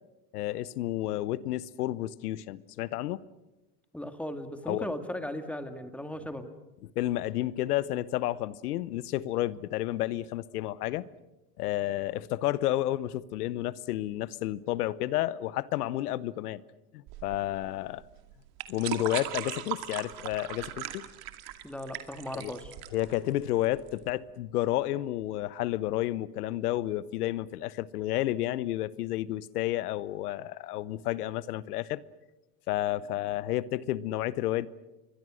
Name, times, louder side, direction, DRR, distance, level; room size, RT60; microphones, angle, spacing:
voice 1, 0.3-3.2 4.7-4.9 7.0-11.0 11.6-16.6 16.9-18.0 18.7-21.0 22.3-22.5 22.9-32.0 32.7-34.7, left 15 dB, 90° left, 1.0 m, -31 dB
voice 2, 3.9-6.5 21.6-22.7, left 1 dB, 5° left, 2.2 m, -37 dB
sound 1, 17.1-24.1, right 14 dB, 55° right, 2.4 m, -39 dB
29.0 x 23.0 x 6.4 m
supercardioid pair, 115°, 44 cm